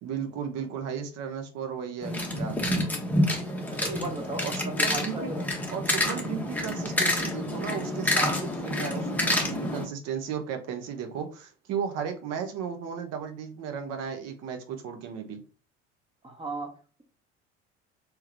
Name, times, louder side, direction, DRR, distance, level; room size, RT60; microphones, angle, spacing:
voice 1, 0.0-2.7 4.4-5.3 5.7-15.4, right 7 dB, 45° right, 6 dB, 0.9 m, -35 dB
sound 1, 2.0-9.9, left 1 dB, 5° left, 0.9 m, -28 dB
voice 2, 3.7-5.4 16.2-17.0, right 2 dB, 15° right, 2 dB, 1.1 m, -36 dB
3.5 x 3.1 x 3.2 m, 0.37 s
figure-of-eight pair, 65°, 35 cm